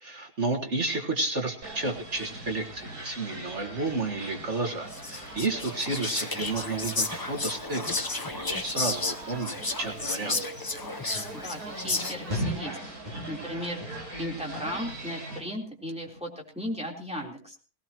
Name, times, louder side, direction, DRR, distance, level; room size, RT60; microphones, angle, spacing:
voice 1, 0.0-10.4, right 3 dB, 45° right, 3 dB, 2.0 m, -31 dB
sound 1, 1.6-15.4, right 2 dB, 65° right, 5.2 m, -41 dB
Whispering, 4.9-12.4, left 3 dB, 25° left, 0.4 m, -32 dB
sound 2, 11.1-11.3 11.8-12.0 12.3-12.7 13.0-13.5 13.8-14.2 14.5-14.9 15.3-15.7 16.1-16.2, equal, 25° right, 5.8 m, -35 dB
voice 2, 11.3-17.6, equal, 5° right, -1 dB, 3.7 m, -36 dB
18.5 x 18.0 x 3.0 m, 0.36 s
omnidirectional pair, 1.7 m